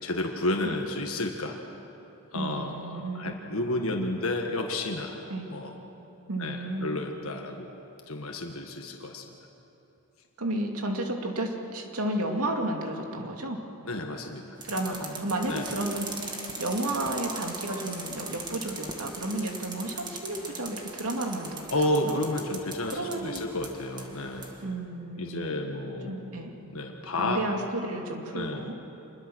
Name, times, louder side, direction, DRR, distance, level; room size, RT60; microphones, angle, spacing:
voice 1, 0.0-1.6 2.3-5.2 5.5-5.7 6.4-7.7 8.1-9.2 13.8-14.6 15.5-15.7 21.7-24.5 25.2-26.1 26.7-27.4 28.3-28.7, left 1 dB, 70° left, 2 dB, 1.6 m, -31 dB
voice 2, 2.3-3.4 5.3-5.5 6.3-6.9 10.4-13.6 14.6-21.7 22.0-22.1 22.9-23.5 24.6-25.6 26.0-26.5 27.1-28.7, right 1 dB, 80° right, 2 dB, 2.5 m, -32 dB
sound 1, 14.6-24.6, right 3 dB, 20° right, 1.8 m, -40 dB
26.5 x 21.0 x 6.4 m, 2.9 s
head